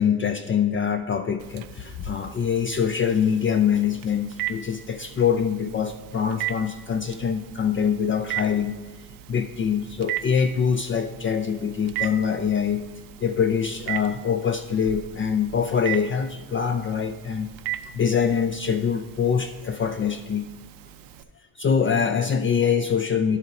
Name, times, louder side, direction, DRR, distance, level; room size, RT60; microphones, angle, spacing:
voice 1, 0.0-8.8 9.3-12.8 13.2-17.5 17.9-20.5 21.6-23.4, left 7 dB, 35° left, 7 dB, 0.4 m, -24 dB
Telephone, 1.4-21.2, right 13 dB, 65° right, 0.5 m, -38 dB
10.5 x 4.1 x 3.9 m, 1.3 s
cardioid pair, 85°, 37 cm